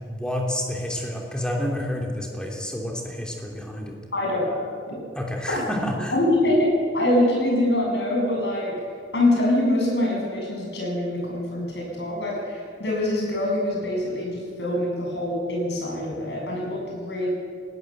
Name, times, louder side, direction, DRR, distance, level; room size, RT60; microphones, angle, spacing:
voice 1, 0.1-3.9 5.1-6.1, left 1 dB, 5° left, 0 dB, 2.9 m, -29 dB
voice 2, 4.1-5.0 5.5-5.6 6.1-8.8 9.1-17.3, left 1 dB, 70° left, -2 dB, 7.9 m, -24 dB
20.0 x 17.0 x 8.0 m, 2.1 s
head